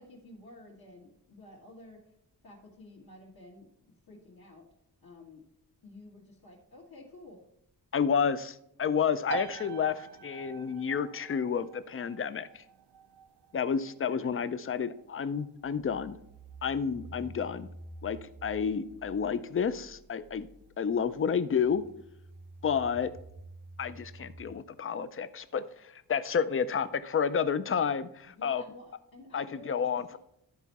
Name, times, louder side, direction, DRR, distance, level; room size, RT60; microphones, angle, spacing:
voice 1, 0.0-2.1 2.4-4.6 5.0-5.4 5.8-7.5 28.2-30.0, left 2 dB, 65° left, -5 dB, 1.5 m, -51 dB
voice 2, 7.9-12.6 13.5-16.2 16.6-17.7 18.0-20.5 20.8-21.8 22.6-23.1 23.8-28.6 29.3-30.2, left 6 dB, 35° left, 14 dB, 0.4 m, -30 dB
sound 1, 9.3-23.8, right 8 dB, 90° right, 0.5 m, -48 dB
sound 2, 15.6-24.5, right 3 dB, 25° right, 0.6 m, -50 dB
12.0 x 4.5 x 4.1 m, 0.79 s
wide cardioid pair, 170°, 39 cm